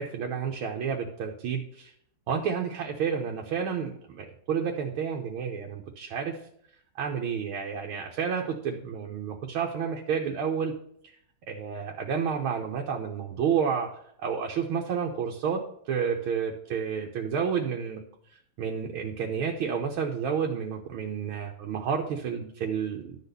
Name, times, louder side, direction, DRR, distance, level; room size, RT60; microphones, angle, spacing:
voice 1, 0.0-1.9 2.3-6.4 7.0-10.7 11.5-13.9 14.2-18.0 18.6-23.2, right 7 dB, 85° right, 1 dB, 1.7 m, -30 dB
11.5 x 4.1 x 6.7 m, 0.69 s
omnidirectional pair, 2.2 m